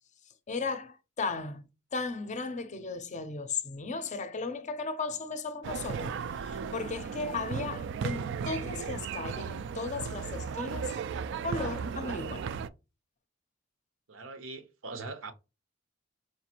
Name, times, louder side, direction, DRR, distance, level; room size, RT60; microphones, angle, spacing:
voice 1, 0.5-6.1 6.4-10.9 11.4-12.5, left 4 dB, 40° left, 0.5 m, -36 dB
sound 1, 5.6-12.7, right 6 dB, 65° right, 0.3 m, -35 dB
voice 2, 14.1-15.3, right 3 dB, 85° right, 0.8 m, -41 dB
4.6 x 2.5 x 2.8 m
head